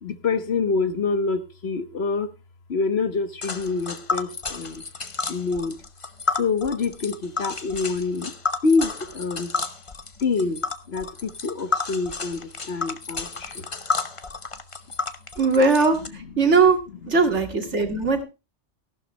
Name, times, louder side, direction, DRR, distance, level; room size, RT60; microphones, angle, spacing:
voice 1, 0.0-2.3 2.7-4.8 5.3-5.8 6.3-8.3 8.6-9.5 10.2-10.6 10.9-13.7 17.9-18.1, left 4 dB, 60° left, 11 dB, 1.4 m, -26 dB
Tick, 3.4-16.1, left 4 dB, 30° left, 0.9 m, -31 dB
voice 2, 15.4-16.8 17.1-18.2, right 4 dB, 70° right, 5 dB, 2.5 m, -19 dB
14.5 x 11.5 x 3.1 m, 0.29 s
omnidirectional pair, 1.2 m